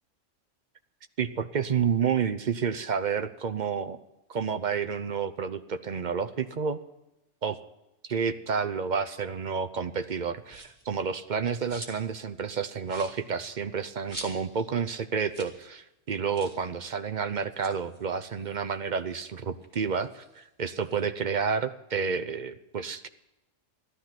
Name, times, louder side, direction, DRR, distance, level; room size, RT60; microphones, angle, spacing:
voice 1, 1.2-4.0 4.3-6.8 7.4-7.6 8.0-23.1, right 6 dB, 45° right, 11 dB, 0.7 m, -30 dB
sound 1, 10.4-10.9 11.3-12.2 12.5-12.6 12.8-14.7 15.0-15.1 15.3-15.6 15.9-16.0 16.3-16.7 17.4-19.1 19.6-21.0, right 1 dB, 25° right, 2.2 m, -45 dB
14.5 x 13.0 x 5.9 m, 0.93 s
omnidirectional pair, 1.3 m